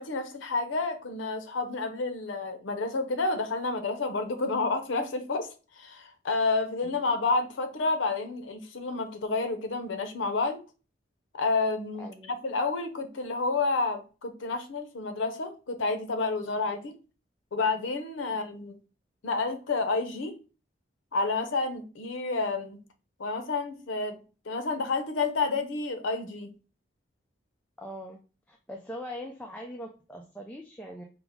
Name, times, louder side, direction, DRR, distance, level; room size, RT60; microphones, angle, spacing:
voice 1, 0.0-10.6 11.3-16.9 17.5-18.8 19.2-20.4 21.1-22.8 23.2-24.2 24.5-26.5, left 3 dB, 90° left, 0.6 m, -30 dB
voice 2, 12.0-12.3 27.8-28.2 28.5-31.0, equal, 5° left, 0.3 m, -41 dB
4.7 x 2.0 x 3.5 m
head